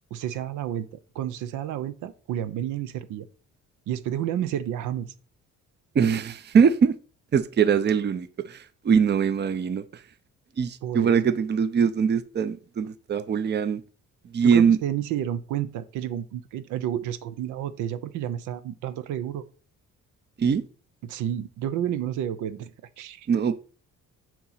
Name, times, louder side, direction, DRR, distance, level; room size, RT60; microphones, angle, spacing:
voice 1, 0.1-0.9 1.1-3.3 3.9-5.1 10.8-11.2 14.4-19.4 21.0-23.3, right 10 dB, 85° right, 0.6 m, -30 dB
voice 2, 5.9-6.9 7.3-9.8 10.6-13.8 14.3-14.8 20.4-20.6 23.3-23.5, right 6 dB, 35° right, 0.6 m, -22 dB
6.9 x 2.9 x 5.6 m
cardioid pair, 90°, 30 cm